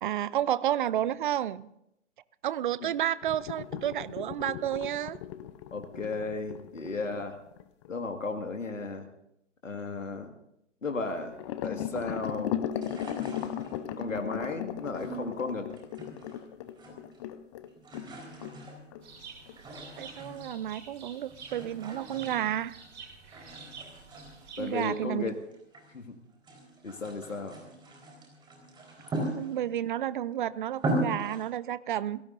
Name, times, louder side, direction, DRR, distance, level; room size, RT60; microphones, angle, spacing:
voice 1, 0.0-1.7 2.4-5.2 20.0-22.8 24.6-25.3 29.4-32.2, right 11 dB, 40° right, 19 dB, 0.6 m, -31 dB
sound 1, 3.2-7.9 11.3-18.1 18.4-18.6 18.9-19.0 19.5-19.6, left 10 dB, 25° left, 0.7 m, -37 dB
voice 2, 5.7-7.4 7.9-9.1 9.6-10.3 10.8-11.4 11.6-12.6 14.0-15.7 24.6-25.4 25.9-26.2 26.8-27.6, left 3 dB, 80° left, 5 dB, 2.0 m, -34 dB
sound 2, 12.7-14.0 14.9-16.4 16.7-17.3 17.6-20.7 21.3-22.9 23.3-25.9 26.3-29.9 30.3-30.4 30.7-31.5, right 1 dB, 10° right, 4.4 m, -39 dB
sound 3, 19.0-24.9, right 5 dB, 60° right, 6.7 m, -49 dB
28.5 x 17.5 x 2.6 m, 0.78 s
figure-of-eight pair, 125°, 38 cm